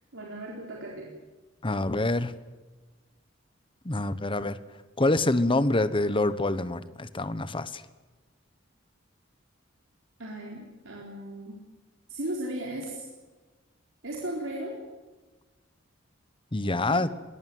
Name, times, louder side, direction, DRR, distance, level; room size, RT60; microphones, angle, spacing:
voice 1, 0.1-1.1 10.2-11.6 12.1-13.1 14.0-14.8 16.8-17.0, right 1 dB, 70° right, -2 dB, 4.1 m, -36 dB
voice 2, 1.6-2.3 3.8-4.6 5.0-7.8 16.5-17.1, left 2 dB, 25° left, 14 dB, 1.1 m, -26 dB
20.5 x 20.5 x 9.3 m, 1.2 s
head